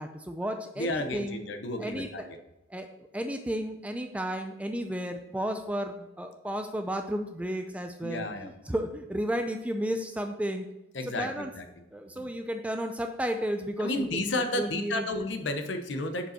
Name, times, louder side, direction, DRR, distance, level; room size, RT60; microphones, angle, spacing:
voice 1, 0.0-1.4 1.8-2.1 2.7-2.9 3.1-10.7 11.0-11.5 11.9-15.1, equal, 5° right, 6 dB, 0.4 m, -33 dB
voice 2, 0.8-2.4 8.0-8.5 10.9-11.6 12.2-12.3 13.8-16.3, left 2 dB, 65° left, 7 dB, 0.8 m, -32 dB
6.7 x 5.3 x 4.3 m, 0.93 s
head